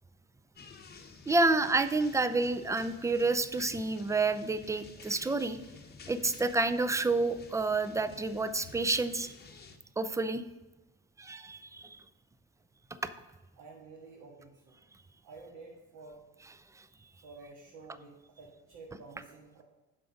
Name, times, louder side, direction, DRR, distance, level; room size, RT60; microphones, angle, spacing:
sound 1, 0.6-9.8, left 5 dB, 25° left, 0.9 m, -52 dB
voice 1, 1.3-5.6 6.1-9.3 10.0-10.4 11.2-12.0 13.0-13.1 16.8-16.9, right 3 dB, 10° right, 12 dB, 0.5 m, -29 dB
voice 2, 13.6-14.8 15.2-16.2 17.2-19.6, right 3 dB, 65° right, -3 dB, 1.7 m, -51 dB
7.6 x 5.8 x 5.1 m, 1.1 s
supercardioid pair, 75°, 37 cm